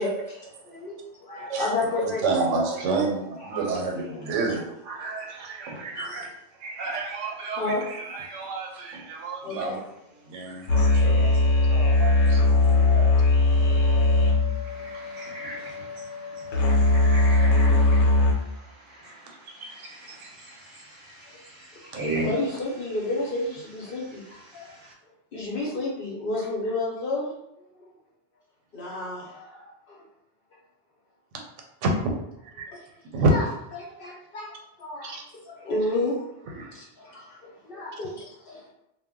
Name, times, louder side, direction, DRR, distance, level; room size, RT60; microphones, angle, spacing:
voice 1, 0.0-2.3 3.4-3.6 4.3-4.6 4.9-5.1 6.0-6.2 7.6-7.8 9.4-9.9 12.0-12.1 13.5-13.7 15.6-15.7 21.8-24.7 25.3-27.3 28.7-30.0 32.7-32.8 33.3-35.2 35.4-36.2 36.6-38.7, left 2 dB, 55° left, -4 dB, 0.8 m, -31 dB
voice 2, 1.4-1.7 2.2-6.3 6.6-9.8 10.3-11.4 11.7-12.4 12.7-13.1 31.8-32.1 32.6-32.7 33.1-33.3 35.0-35.2 36.5-36.7, right 3 dB, 90° right, 1 dB, 0.9 m, -29 dB
sound 1, 10.7-18.3, left 2 dB, 85° left, 1.0 m, -20 dB
voice 3, 14.6-16.0 16.5-18.1 18.9-19.2 19.6-21.3 21.5-22.3, right 2 dB, 50° right, -3 dB, 0.8 m, -37 dB
2.1 x 2.0 x 3.6 m, 0.83 s
omnidirectional pair, 1.3 m